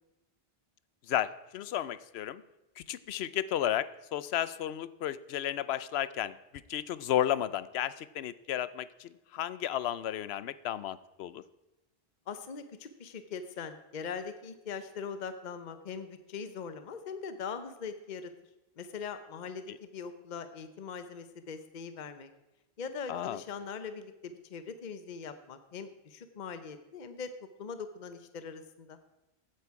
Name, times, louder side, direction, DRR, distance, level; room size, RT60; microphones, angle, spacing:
voice 1, 1.1-2.4 2.8-6.4 6.7-11.4 19.7-19.8 23.1-23.4, left 11 dB, 75° left, 17 dB, 0.8 m, -33 dB
voice 2, 12.3-18.3 18.8-22.3 22.8-27.3 27.6-29.0, left 6 dB, 50° left, 10 dB, 0.9 m, -41 dB
15.5 x 8.9 x 4.7 m, 0.98 s
omnidirectional pair, 1.1 m